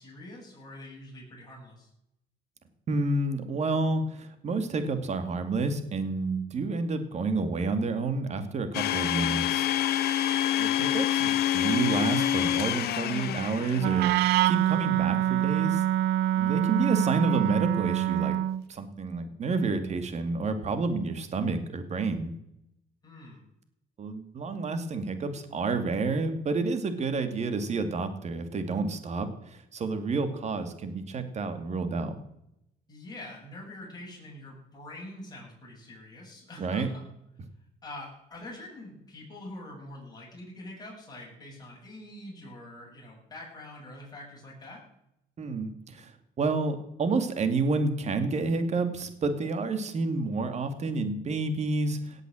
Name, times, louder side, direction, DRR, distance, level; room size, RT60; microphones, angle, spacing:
voice 1, 0.0-1.9 23.0-23.4 32.9-37.0 37.8-44.8, left 1 dB, 25° left, -4 dB, 7.9 m, -45 dB
voice 2, 2.9-9.7 10.6-14.1 14.4-15.8 16.3-18.3 18.7-22.3 24.0-32.1 36.6-36.9 45.4-46.1 46.4-52.2, right 3 dB, 40° right, 9 dB, 2.4 m, -29 dB
Domestic sounds home sounds, 8.7-14.3, left 11 dB, 70° left, 1.0 m, -27 dB
Wind instrument woodwind instrument, 13.8-18.6, right 12 dB, 80° right, 0.5 m, -25 dB
17.5 x 8.2 x 7.8 m, 0.79 s
cardioid pair, 110°, 17 cm